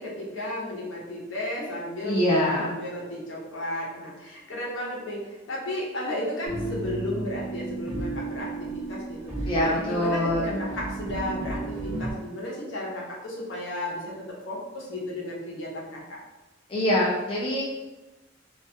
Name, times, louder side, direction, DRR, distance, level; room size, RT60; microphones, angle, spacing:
voice 1, 0.0-16.2, left 1 dB, 65° left, -3 dB, 0.7 m, -34 dB
voice 2, 2.0-2.7 9.5-10.6 16.7-17.6, left 1 dB, 25° left, -5 dB, 0.3 m, -24 dB
sound 1, 6.5-12.1, right 2 dB, ahead, 0.7 m, -34 dB
2.3 x 2.1 x 2.7 m, 1.1 s
head